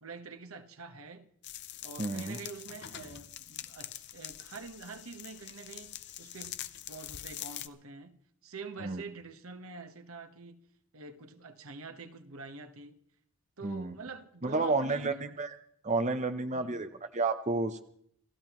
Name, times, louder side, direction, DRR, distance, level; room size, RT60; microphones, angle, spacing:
voice 1, 0.0-1.3 1.8-6.6 6.9-8.2 8.4-10.6 10.9-13.0 13.6-15.2 16.5-16.8, right 4 dB, 80° right, 1.2 m, -46 dB
sound 1, 1.4-7.7, left 12 dB, 55° left, 0.6 m, -44 dB
voice 2, 2.0-2.4 8.8-9.0 13.6-14.0 14.4-15.6 15.8-17.8, right 3 dB, 35° right, 0.8 m, -31 dB
28.5 x 15.0 x 3.1 m
head